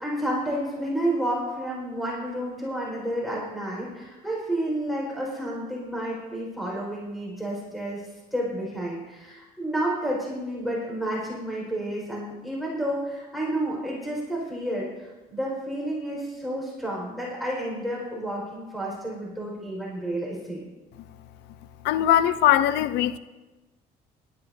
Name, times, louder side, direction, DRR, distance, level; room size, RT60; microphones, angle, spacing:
voice 1, 0.0-8.0 8.3-20.7, right 1 dB, ahead, 4.7 m, -30 dB
voice 2, 21.8-23.2, left 12 dB, 90° left, 0.6 m, -20 dB
18.5 x 13.0 x 2.7 m
cardioid pair, 110°, 17 cm